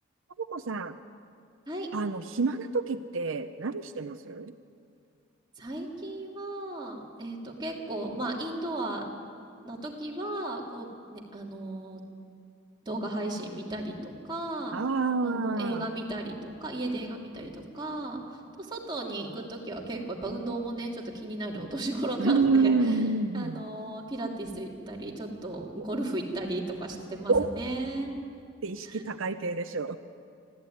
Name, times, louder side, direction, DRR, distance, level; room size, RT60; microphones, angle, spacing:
voice 1, 0.4-0.9 1.9-4.5 14.7-15.8 22.2-23.6 25.8-25.9 27.3-27.5 28.6-30.0, right 3 dB, 80° right, 9 dB, 0.7 m, -28 dB
voice 2, 5.6-9.1 9.6-12.0 12.8-14.8 15.2-23.0 23.3-28.1 28.8-29.0, right 1 dB, 25° right, -2 dB, 3.0 m, -35 dB
24.5 x 15.0 x 9.3 m, 2.4 s
head